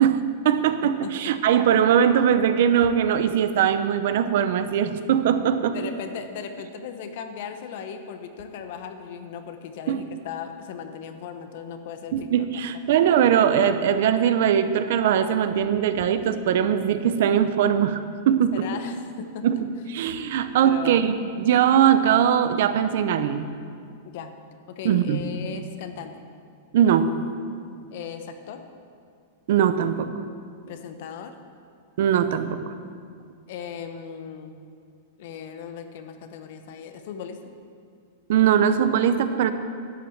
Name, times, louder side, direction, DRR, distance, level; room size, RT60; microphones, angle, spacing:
voice 1, 0.0-5.8 9.9-10.0 12.1-18.0 18.3-18.7 19.4-19.6 19.9-23.5 24.8-25.2 26.7-27.1 29.5-30.1 32.0-32.7 38.3-39.5, right 9 dB, 65° right, 10 dB, 0.7 m, -21 dB
voice 2, 5.7-12.5 18.5-19.6 20.6-21.0 24.0-24.3 24.7-26.2 27.9-28.6 30.7-31.3 33.5-34.6 35.2-37.5, left 7 dB, 60° left, 7 dB, 1.1 m, -37 dB
11.5 x 7.6 x 7.3 m, 2.2 s
supercardioid pair, 145°, 0 cm